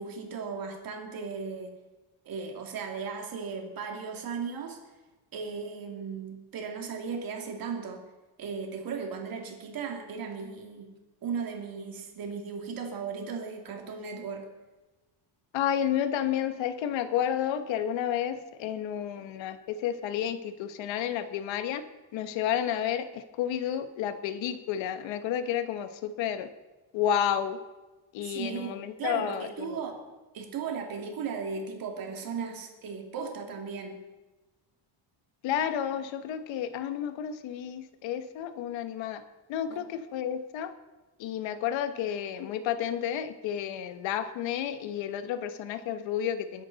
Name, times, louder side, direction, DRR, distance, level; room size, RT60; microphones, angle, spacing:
voice 1, 0.0-1.7 2.2-4.8 5.3-8.0 8.4-10.9 11.2-14.5 28.2-30.0 30.3-34.0 39.7-39.8, right 5 dB, 45° right, 3 dB, 2.5 m, -36 dB
voice 2, 15.5-21.8 22.1-26.5 26.9-27.6 28.1-29.8 35.4-39.2 39.5-40.7 41.2-46.6, left 9 dB, 70° left, 10 dB, 1.2 m, -31 dB
21.5 x 10.5 x 4.1 m, 1.1 s
cardioid pair, 160°, 47 cm